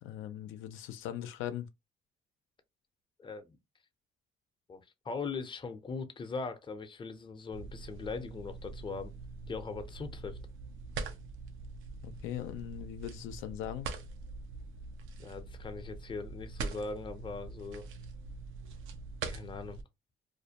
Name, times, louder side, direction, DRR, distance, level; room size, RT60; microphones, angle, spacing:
voice 1, 0.0-1.7 12.0-13.9, left 11 dB, 90° left, 0.4 m, -40 dB
voice 2, 3.2-3.6 4.7-9.1 9.5-10.4 15.2-17.9 19.2-19.8, left 4 dB, 25° left, 0.5 m, -40 dB
sound 1, 7.5-19.8, right 4 dB, 85° right, 0.5 m, -43 dB
2.4 x 2.1 x 2.7 m
cardioid pair, 90°, 20 cm